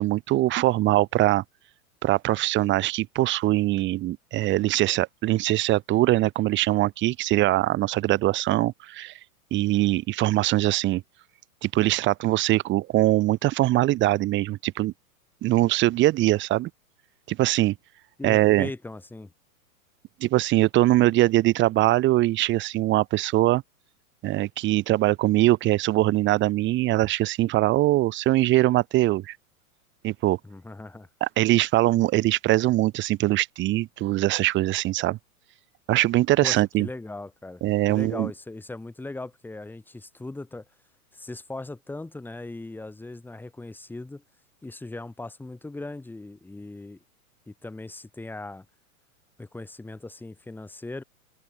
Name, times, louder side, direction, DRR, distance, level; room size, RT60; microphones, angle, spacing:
voice 1, 0.0-1.4 2.0-9.1 9.5-11.0 11.6-14.9 15.4-16.7 17.3-17.8 18.2-18.7 20.2-23.6 24.2-29.4 30.0-30.4 31.2-35.2 35.9-36.9 37.6-38.3, right 16 dB, 25° right, 1.1 m, -22 dB
voice 2, 18.2-19.3 30.4-31.1 36.4-37.6 37.9-40.7 41.1-44.2 44.6-47.0 47.5-48.7 49.4-51.0, left 2 dB, 5° left, 1.9 m, -38 dB
open air
hypercardioid pair, 130°, 44 cm